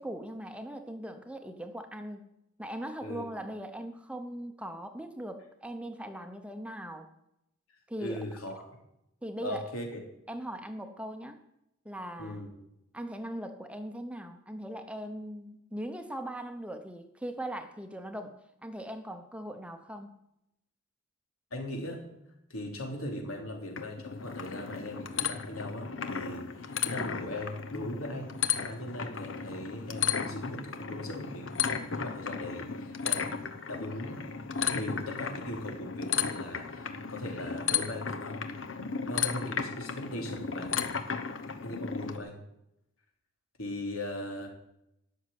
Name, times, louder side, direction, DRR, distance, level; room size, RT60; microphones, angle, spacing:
voice 1, 0.0-2.3 2.6-7.1 7.9-8.2 9.2-9.7 10.3-11.4 11.8-12.4 12.9-20.2, right 1 dB, 5° right, 7 dB, 0.9 m, -40 dB
voice 2, 8.0-8.7 9.4-10.0 12.2-12.5 21.5-22.1 22.5-34.2 34.7-38.4 39.0-40.8 41.6-42.4 43.6-44.5, left 1 dB, 85° left, 1 dB, 3.4 m, -39 dB
sound 1, 23.8-42.2, left 7 dB, 65° left, 1.0 m, -35 dB
13.0 x 6.6 x 9.9 m, 0.82 s
head